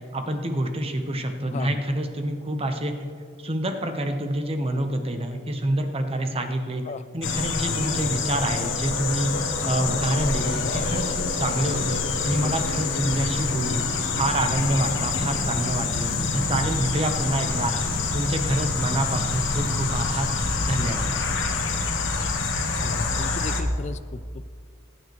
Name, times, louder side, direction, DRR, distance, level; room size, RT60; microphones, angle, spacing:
voice 1, 0.1-2.9 3.4-6.8 7.1-13.8 14.1-17.7 18.1-20.3 20.6-21.1, right 1 dB, 30° right, 6 dB, 1.0 m, -27 dB
voice 2, 1.5-1.8 6.9-7.0 12.4-12.5 22.8-24.5, left 4 dB, 35° left, 14 dB, 0.3 m, -36 dB
sound 1, 7.2-23.6, left 4 dB, 75° left, 1.2 m, -26 dB
19.5 x 9.5 x 3.2 m, 2.2 s
head